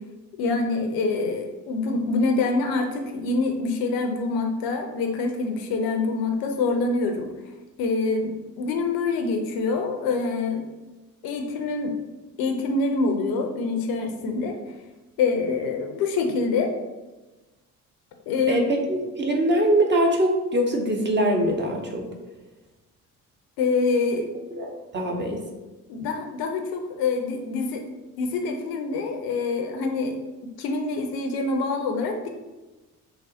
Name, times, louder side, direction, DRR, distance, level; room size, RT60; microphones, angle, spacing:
voice 1, 0.4-7.3 7.8-10.6 11.2-11.9 12.4-14.5 15.2-16.7 18.3-18.9 23.6-24.3 25.9-27.8 28.2-30.2 30.6-32.3, left 3 dB, 50° left, 4 dB, 0.6 m, -25 dB
voice 2, 18.5-22.1 24.5-25.4, right 1 dB, 25° right, 1 dB, 0.7 m, -23 dB
5.6 x 2.0 x 2.8 m, 1.1 s
figure-of-eight pair, 50°, 46 cm